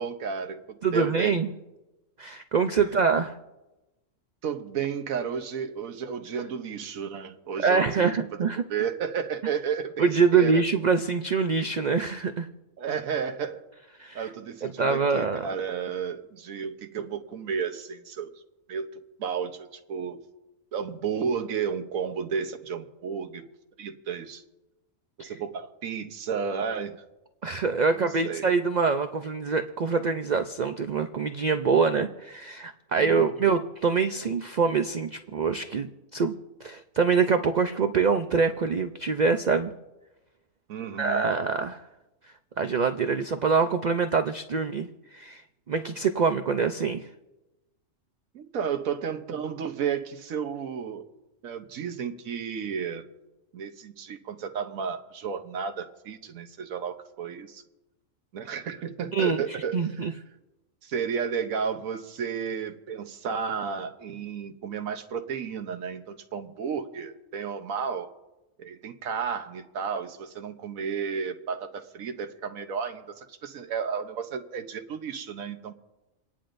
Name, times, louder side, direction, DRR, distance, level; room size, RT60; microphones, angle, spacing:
voice 1, 0.0-1.4 2.8-3.0 4.4-10.6 12.8-13.6 14.1-18.3 18.7-18.9 19.2-20.2 20.7-23.4 23.8-24.4 25.2-27.0 27.9-28.5 32.9-33.5 40.7-41.3 48.3-51.1 51.4-53.1 53.5-57.6 58.3-60.2 60.8-68.1 68.6-75.7, right 6 dB, 90° right, 7 dB, 1.3 m, -32 dB
voice 2, 0.8-1.5 2.2-3.4 7.6-8.6 10.0-12.5 14.0-14.3 14.6-15.5 25.2-25.3 27.4-36.3 36.6-39.7 41.0-41.8 42.6-45.4 45.7-47.1 59.1-60.1, right 5 dB, 65° right, 8 dB, 0.4 m, -25 dB
28.5 x 9.9 x 2.6 m, 1.0 s
omnidirectional pair, 1.4 m